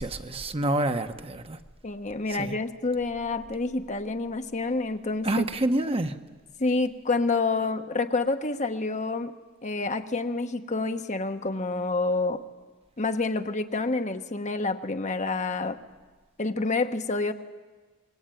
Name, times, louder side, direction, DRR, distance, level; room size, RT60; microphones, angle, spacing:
voice 1, 0.0-1.6 2.3-2.5 5.2-6.2, right 1 dB, 25° right, 1.1 m, -27 dB
voice 2, 1.8-5.4 6.6-9.3 9.6-12.4 13.0-15.8 16.4-17.3, left 3 dB, 35° left, 1.1 m, -28 dB
26.0 x 22.0 x 9.2 m
head